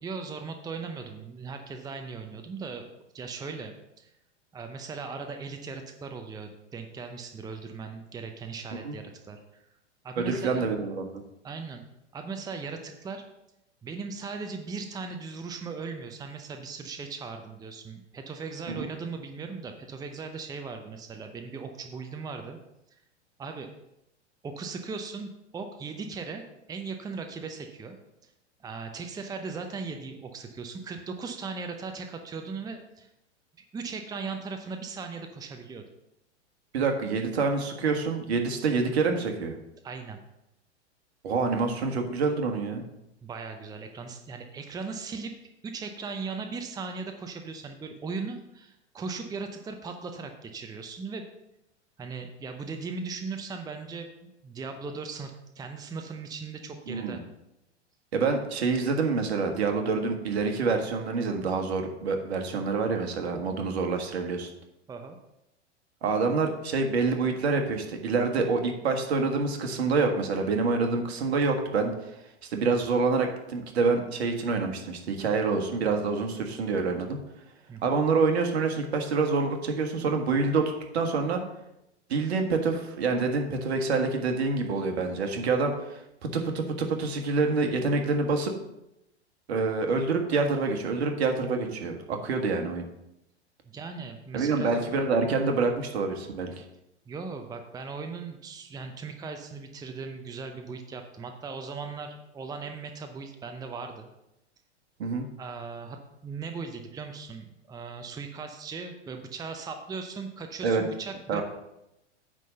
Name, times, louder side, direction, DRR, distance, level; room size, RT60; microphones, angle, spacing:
voice 1, 0.0-2.9 3.1-4.1 4.5-9.6 10.0-10.7 11.4-11.8 12.1-13.2 13.8-22.6 23.4-23.7 24.4-28.0 28.6-33.1 33.6-35.8 39.8-40.2 43.2-45.3 45.6-51.2 52.0-57.2 64.9-65.2 77.7-78.0 93.7-94.8 97.1-104.1 105.4-111.4, right 4 dB, 10° right, 6 dB, 0.7 m, -38 dB
voice 2, 10.2-11.2 18.8-18.9 36.7-39.6 41.2-42.8 56.9-57.2 58.1-64.5 66.0-72.1 72.5-77.2 77.8-81.4 82.1-88.5 89.5-92.8 94.3-96.6 105.0-105.2 110.6-110.8 111.3-111.4, right 4 dB, 65° right, 4 dB, 1.6 m, -27 dB
9.2 x 3.8 x 6.6 m, 0.86 s
figure-of-eight pair, 100°, 35 cm